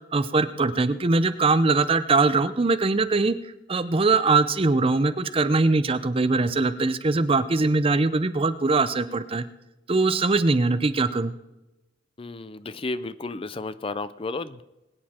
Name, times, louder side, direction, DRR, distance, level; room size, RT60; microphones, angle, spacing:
voice 1, 0.1-3.4 3.7-9.4 9.9-11.3, right 3 dB, 30° right, 12 dB, 0.6 m, -22 dB
voice 2, 12.2-14.6, left 3 dB, 30° left, 14 dB, 0.5 m, -32 dB
21.5 x 9.6 x 4.3 m, 0.99 s
head